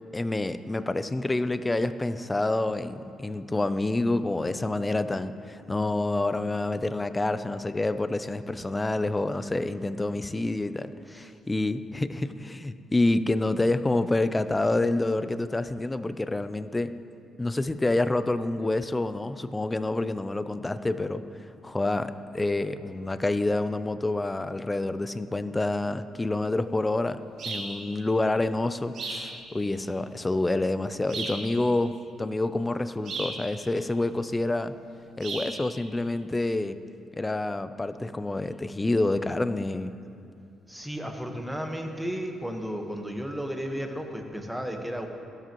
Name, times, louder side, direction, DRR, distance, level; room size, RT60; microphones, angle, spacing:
voice 1, 0.1-16.9 17.4-21.2 21.6-27.2 27.5-34.7 35.2-36.8 37.2-39.9, left 2 dB, 15° left, 12 dB, 0.5 m, -28 dB
sound 1, 27.4-27.7 28.9-29.3 31.1-31.4 33.1-33.4 35.2-35.5, right 3 dB, 65° right, 3.0 m, -34 dB
voice 2, 40.7-45.1, equal, 5° right, 3 dB, 1.3 m, -33 dB
15.5 x 12.5 x 3.1 m, 2.5 s
cardioid pair, 90°, 0 cm